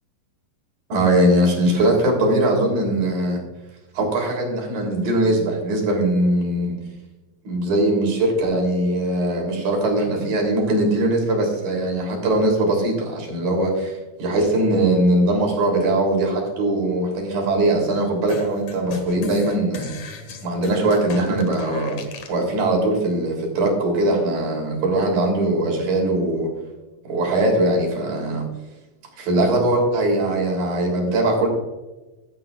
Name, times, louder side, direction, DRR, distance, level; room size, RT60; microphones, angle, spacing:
voice 1, 0.9-3.4 3.9-6.8 7.4-19.9 20.4-22.0 22.3-26.5 27.1-28.4 29.2-31.5, right 1 dB, 65° right, 0 dB, 4.9 m, -21 dB
sound 1, 18.3-22.4, left 4 dB, 55° left, 2.4 m, -36 dB
16.0 x 11.5 x 2.4 m, 1.1 s
omnidirectional pair, 4.3 m